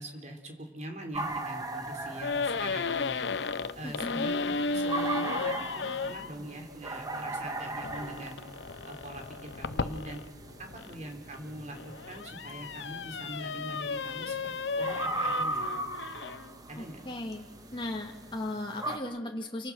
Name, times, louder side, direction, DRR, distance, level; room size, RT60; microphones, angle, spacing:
voice 1, 0.0-3.3 3.7-8.4 8.8-10.2 10.6-15.7 16.7-17.0, right 1 dB, 40° right, 3 dB, 4.1 m, -43 dB
sound 1, 1.1-19.0, right 2 dB, 20° right, 1.7 m, -39 dB
sound 2, 2.2-6.3 7.8-10.9 11.6-16.5, left 4 dB, 80° left, 0.8 m, -34 dB
voice 2, 3.8-4.3 16.8-17.5 17.7-19.7, left 1 dB, 25° left, 0 dB, 2.0 m, -36 dB
30.0 x 24.5 x 6.3 m, 1.2 s
head